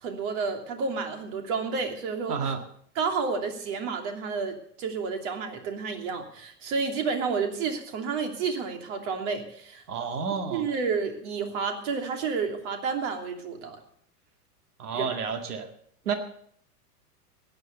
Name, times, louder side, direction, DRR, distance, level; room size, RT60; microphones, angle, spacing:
voice 1, 0.0-2.5 2.9-9.8 10.5-13.8 14.9-15.1, right 5 dB, 50° right, 5 dB, 3.0 m, -30 dB
voice 2, 2.3-2.6 9.9-10.7 14.8-15.7 16.1-16.2, right 6 dB, 70° right, 6 dB, 2.1 m, -30 dB
15.5 x 10.0 x 6.8 m, 0.66 s
figure-of-eight pair, 95°, 47 cm